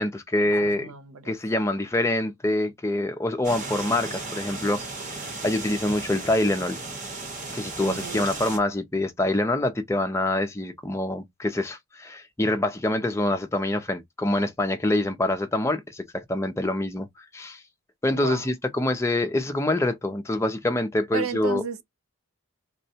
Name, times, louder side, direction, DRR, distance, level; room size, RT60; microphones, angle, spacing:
voice 1, 0.0-0.9 1.2-5.1 5.4-6.8 7.5-17.1 17.3-17.6 18.0-21.6, left 1 dB, 15° left, 0.4 m, -25 dB
voice 2, 0.6-1.3 7.8-8.2 18.1-18.5 21.1-21.8, right 7 dB, 80° right, 0.5 m, -33 dB
sound 1, 3.4-8.6, right 3 dB, 35° right, 0.9 m, -35 dB
3.6 x 2.1 x 2.7 m
head